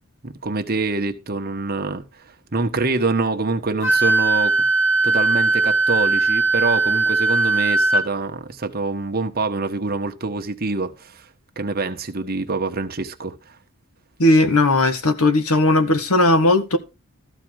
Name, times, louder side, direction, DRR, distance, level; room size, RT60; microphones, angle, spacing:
voice 1, 0.2-4.6 5.0-11.3 11.6-13.6, right 3 dB, 45° right, 1.3 m, -25 dB
Wind instrument woodwind instrument, 3.8-8.0, right 3 dB, 60° left, 3.9 m, -19 dB
voice 2, 14.2-16.8, left 2 dB, 80° left, 1.7 m, -17 dB
14.0 x 4.7 x 6.4 m
head